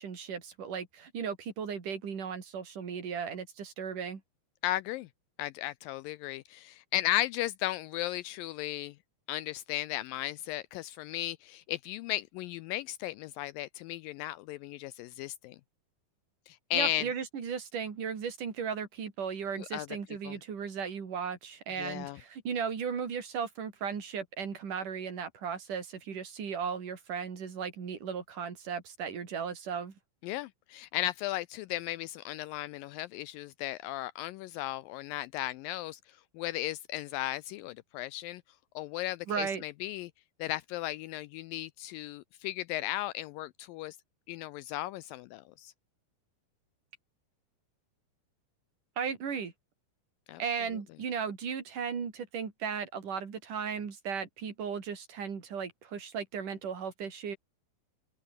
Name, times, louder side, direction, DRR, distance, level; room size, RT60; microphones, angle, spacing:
voice 1, 0.0-4.2 16.7-29.9 39.3-39.6 49.0-49.5 50.4-57.4, right 6 dB, 55° right, 5.1 m, -36 dB
voice 2, 4.6-5.1 5.4-8.9 9.3-15.6 16.5-17.1 19.6-19.9 20.2-20.4 21.8-22.2 30.2-36.0 36.4-38.4 38.8-40.1 40.4-44.0 44.3-45.7 50.3-50.4, left 15 dB, 80° left, 2.0 m, -35 dB
open air
omnidirectional pair, 4.5 m